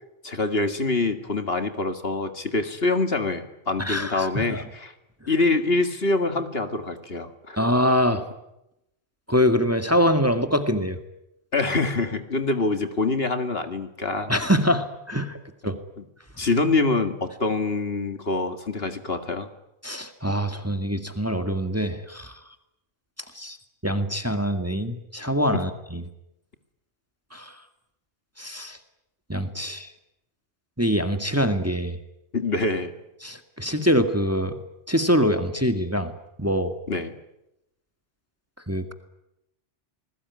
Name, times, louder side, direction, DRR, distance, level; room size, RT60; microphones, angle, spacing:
voice 1, 0.2-4.9 5.3-7.6 11.5-14.3 16.4-19.5 25.5-25.7 32.3-32.9 36.9-37.1, left 3 dB, 50° left, 8 dB, 2.2 m, -25 dB
voice 2, 3.8-4.6 7.6-8.2 9.3-11.0 14.3-15.4 15.6-15.8 19.8-22.3 23.4-23.6 23.8-26.0 27.3-27.5 28.4-28.8 29.3-29.9 30.8-32.0 33.2-34.6 34.9-36.1 36.4-36.7 38.7-38.9, equal, 10° right, 8 dB, 2.0 m, -24 dB
29.0 x 20.5 x 9.6 m, 0.87 s
omnidirectional pair, 1.3 m